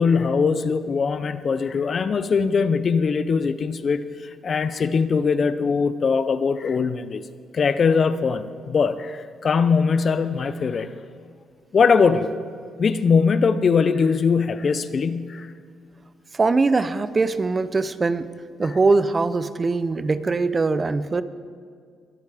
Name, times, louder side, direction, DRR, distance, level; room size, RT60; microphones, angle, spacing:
voice 1, 0.0-7.3 7.5-10.9 11.7-12.3 12.8-15.5, left 5 dB, 45° left, 13 dB, 0.6 m, -21 dB
voice 2, 16.3-18.3 18.6-21.2, right 3 dB, 30° right, 14 dB, 0.6 m, -21 dB
22.5 x 8.3 x 5.0 m, 2.1 s
cardioid pair, 90°, 0 cm